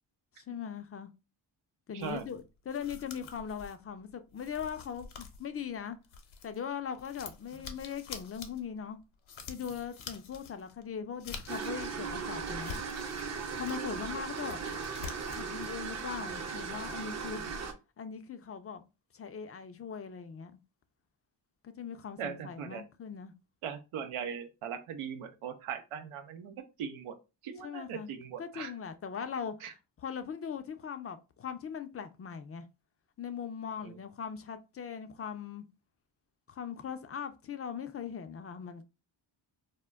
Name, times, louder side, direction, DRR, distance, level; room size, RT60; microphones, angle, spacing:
voice 1, 0.4-1.1 1.9-6.0 6.4-9.0 9.5-12.8 13.5-14.6 15.3-17.4 18.0-18.8 19.1-20.6 21.6-23.3 27.6-28.1 28.4-29.5 30.0-32.6 33.2-35.6 36.5-38.8, left 7 dB, 30° left, 0.4 m, -40 dB
voice 2, 1.9-2.3 22.2-22.8 23.6-27.1 27.4-28.7 29.6-29.7 33.8-34.0, right 7 dB, 85° right, 0.6 m, -40 dB
sound 1, 2.0-6.6 6.9-12.0 12.4-13.9 14.2-15.5, left 6 dB, 70° left, 0.7 m, -47 dB
sound 2, 11.5-17.7, right 5 dB, 35° right, 0.6 m, -37 dB
2.1 x 2.1 x 3.4 m
cardioid pair, 60°, 50 cm